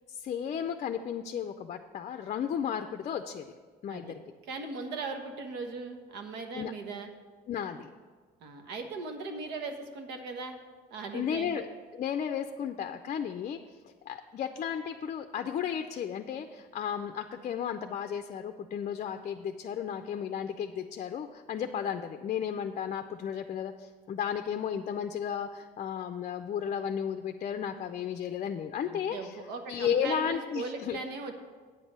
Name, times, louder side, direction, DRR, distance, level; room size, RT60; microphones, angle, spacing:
voice 1, 0.1-3.5 3.8-4.2 6.6-6.7 7.5-7.9 11.1-11.7 11.9-13.6 14.1-29.4 29.7-31.0, left 8 dB, 45° left, 7 dB, 0.5 m, -34 dB
voice 2, 4.4-7.1 8.4-10.6 10.9-11.6 28.9-31.3, right 3 dB, 85° right, 5 dB, 1.2 m, -39 dB
9.1 x 5.4 x 7.2 m, 1.5 s
cardioid pair, 110°, 17 cm